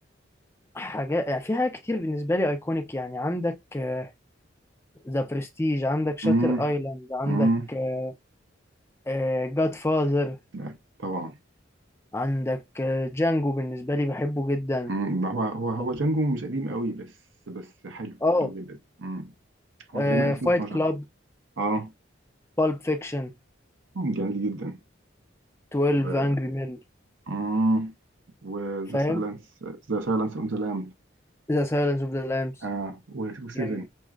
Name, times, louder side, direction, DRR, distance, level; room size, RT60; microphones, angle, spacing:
voice 1, 0.7-4.1 5.0-8.1 9.1-10.4 12.1-14.9 18.2-18.5 19.9-21.0 22.6-23.3 25.7-26.8 28.9-29.2 31.5-32.5 33.5-33.9, left 1 dB, 15° left, 0.5 m, -26 dB
voice 2, 6.2-6.7 7.2-7.7 10.5-11.4 14.9-17.1 17.5-18.6 19.0-19.3 19.9-20.8 21.6-21.9 23.9-24.8 26.0-26.3 27.3-27.9 28.4-30.9 32.6-33.9, right 2 dB, 80° right, 0.7 m, -28 dB
6.1 x 2.1 x 2.3 m
head